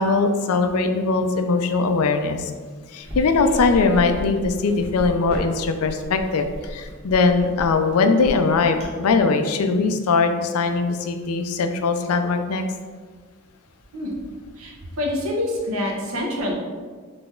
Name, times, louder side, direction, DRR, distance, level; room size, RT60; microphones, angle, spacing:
voice 1, 0.0-2.5 2.9-12.6, left 4 dB, 90° left, 7 dB, 0.4 m, -21 dB
sound 1, 3.0-9.1, equal, 30° right, 1.3 m, -34 dB
voice 2, 14.6-16.5, left 1 dB, 75° right, -1 dB, 0.9 m, -26 dB
3.9 x 3.3 x 3.7 m, 1.5 s
head